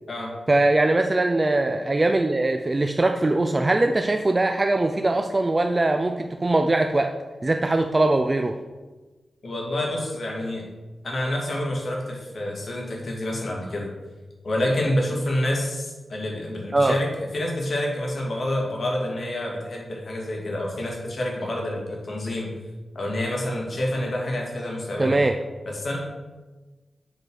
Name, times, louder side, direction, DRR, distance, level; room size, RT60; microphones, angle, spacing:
voice 1, 0.5-7.1 7.4-8.6 16.7-16.9 25.0-25.3, right 2 dB, 30° right, 5 dB, 0.5 m, -21 dB
voice 2, 9.4-10.6 11.0-13.9 14.4-22.5 22.9-25.2 25.7-26.0, left 1 dB, 60° left, -1 dB, 2.3 m, -28 dB
7.5 x 4.7 x 6.3 m, 1.2 s
cardioid pair, 60°, 0 cm